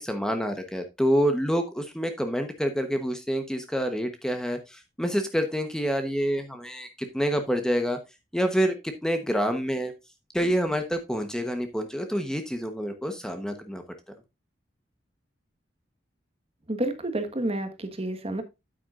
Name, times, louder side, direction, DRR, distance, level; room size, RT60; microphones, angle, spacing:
voice 1, 0.0-6.9 7.1-8.0 8.3-9.9 10.3-13.8, equal, 5° left, 6 dB, 1.0 m, -27 dB
voice 2, 16.7-18.4, right 1 dB, 35° right, 8 dB, 1.4 m, -29 dB
9.3 x 8.6 x 2.5 m, 0.24 s
head